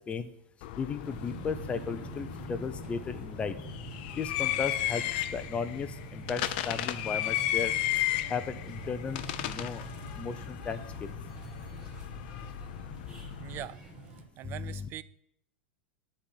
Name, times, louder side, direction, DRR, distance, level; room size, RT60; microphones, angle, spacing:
sound 1, 0.6-13.7, left 13 dB, 55° left, 0.6 m, -35 dB
voice 1, 0.8-3.5 4.2-5.0 5.3-7.7 8.3-9.8 10.2-10.8 14.4-14.9, left 5 dB, 20° left, 11 dB, 0.7 m, -35 dB
sound 2, 1.0-14.2, right 2 dB, 15° right, 2.2 m, -45 dB
voice 2, 13.4-13.8 14.4-15.0, right 13 dB, 35° right, 17 dB, 0.4 m, -41 dB
10.0 x 4.3 x 7.2 m, 0.74 s
hypercardioid pair, 125°, 6 cm